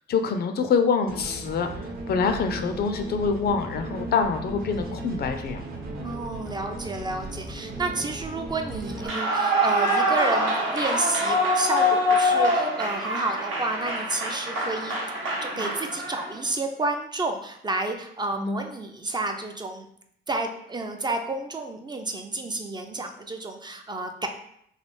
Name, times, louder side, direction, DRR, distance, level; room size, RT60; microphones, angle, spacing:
voice 1, 0.1-1.7 2.1-5.6 15.5-15.8 18.4-18.6, left 5 dB, 55° left, 7 dB, 0.4 m, -25 dB
sound 1, 1.1-9.1, right 2 dB, 50° right, 0.8 m, -36 dB
voice 2, 6.0-15.0 15.4-19.9 20.3-24.3, right 2 dB, 20° right, 4 dB, 0.3 m, -30 dB
Clapping / Cheering / Applause, 9.0-16.4, equal, 80° right, 0.9 m, -24 dB
3.2 x 2.4 x 3.1 m, 0.72 s
cardioid pair, 90°, 20 cm